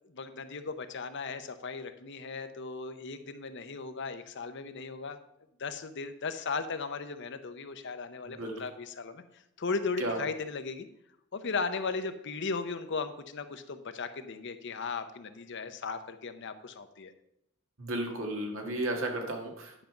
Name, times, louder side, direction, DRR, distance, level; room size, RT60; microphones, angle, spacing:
voice 1, 0.1-5.2 5.6-9.2 9.6-10.9 11.3-17.1, left 4 dB, 55° left, 9 dB, 0.7 m, -36 dB
voice 2, 8.2-8.6 10.0-10.2 17.8-19.9, right 1 dB, 65° right, 2 dB, 1.9 m, -34 dB
10.0 x 5.2 x 5.9 m, 0.79 s
head